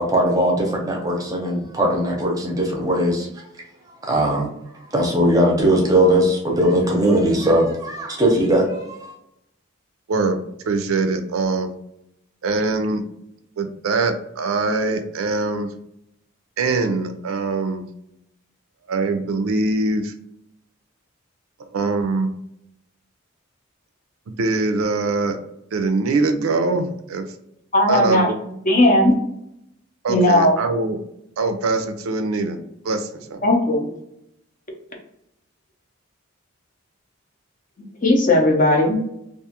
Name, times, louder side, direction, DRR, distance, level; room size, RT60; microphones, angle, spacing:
voice 1, 0.0-3.3 4.0-4.5 4.9-9.1, right 1 dB, 15° right, -1 dB, 0.6 m, -19 dB
voice 2, 10.1-10.4 10.7-11.7 12.4-13.0 13.6-15.7 16.6-17.8 18.9-20.1 21.6-22.3 24.3-25.4 25.7-27.3 27.9-28.4 30.0-31.0 31.4-32.6 32.8-33.4, right 3 dB, 85° right, 7 dB, 0.4 m, -22 dB
voice 3, 27.7-28.3 28.7-29.2 30.1-30.5 33.4-33.9 38.0-39.1, left 1 dB, 40° left, 1 dB, 0.6 m, -16 dB
2.5 x 2.3 x 2.8 m, 0.79 s
head